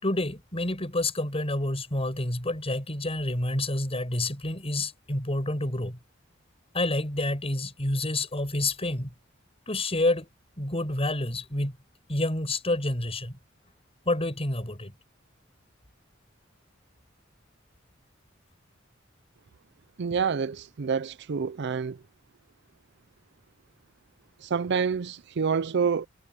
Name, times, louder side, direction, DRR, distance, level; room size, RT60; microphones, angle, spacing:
voice 1, 0.0-6.0 6.7-9.1 9.7-10.3 10.6-11.8 12.1-13.4 14.1-14.9, left 2 dB, 30° left, 5.2 m, -28 dB
voice 2, 20.0-22.0 24.4-26.1, right 6 dB, 60° right, 0.5 m, -27 dB
head